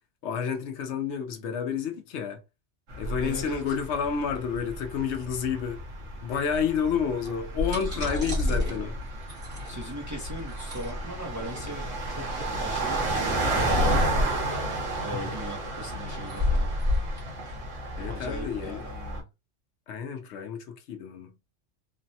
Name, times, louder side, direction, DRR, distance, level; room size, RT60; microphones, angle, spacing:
voice 1, 0.2-2.4 3.0-5.8 6.2-9.0 15.1-15.3 18.0-18.9 19.9-21.3, left 7 dB, 75° left, 0.9 m, -30 dB
sound 1, 2.9-19.2, right 2 dB, 70° right, 1.2 m, -33 dB
voice 2, 3.2-3.6 7.9-9.0 9.7-11.9 12.2-12.3 12.6-14.1 15.0-16.7 18.1-19.2, equal, 20° right, 0.5 m, -39 dB
sound 2, 7.4-18.7, left 2 dB, 50° right, 1.5 m, -30 dB
3.3 x 2.1 x 2.7 m
omnidirectional pair, 1.2 m